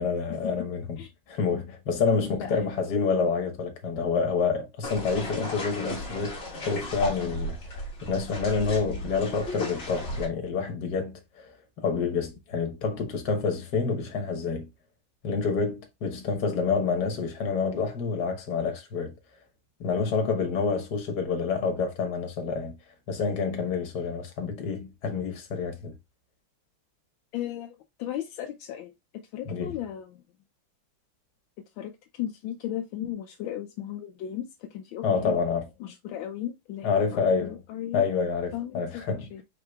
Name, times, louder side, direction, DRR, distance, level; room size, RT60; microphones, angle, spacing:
voice 1, 0.0-1.0 1.3-14.7 15.2-19.1 19.8-22.8 23.1-25.9 29.5-29.8 35.0-35.6 36.8-37.6 37.9-39.3, left 5 dB, 60° left, 1.6 m, -28 dB
voice 2, 2.3-2.7 27.3-30.2 31.6-35.4 35.8-38.1 38.5-39.4, left 11 dB, 80° left, 1.4 m, -36 dB
sound 1, 4.8-10.3, left 1 dB, 35° left, 1.4 m, -35 dB
4.9 x 4.6 x 2.3 m
omnidirectional pair, 2.1 m